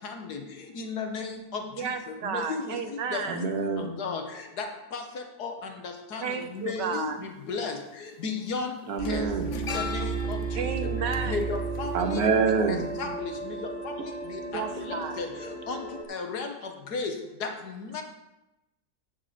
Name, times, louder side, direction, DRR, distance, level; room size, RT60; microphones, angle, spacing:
voice 1, 0.8-1.6 2.3-2.7 3.1-3.5 4.0-4.2 4.6-4.7 4.9-5.0 5.4-5.5 5.8-6.2 6.5-7.1 7.5-7.8 8.2-8.7 9.1-9.2 9.5-10.4 11.3-11.9 13.0-13.5 14.9-15.3 15.7-15.8 16.1-16.5 16.9-17.1 17.4-17.5 17.9-18.0, left 4 dB, 70° left, 4 dB, 1.7 m, -33 dB
voice 2, 1.8-3.4 6.2-7.2 10.5-11.5 14.5-15.2, right 6 dB, 80° right, 7 dB, 1.5 m, -33 dB
voice 3, 3.3-4.0 8.9-9.5 11.9-12.9, right 5 dB, 65° right, 5 dB, 1.4 m, -26 dB
sound 1, 6.5-6.6 7.9-8.1 8.4-12.7 13.0-13.1, left 6 dB, 55° left, 1.0 m, -40 dB
sound 2, 9.0-16.0, right 3 dB, ahead, 2.0 m, -33 dB
11.0 x 4.2 x 7.8 m, 0.96 s
omnidirectional pair, 1.8 m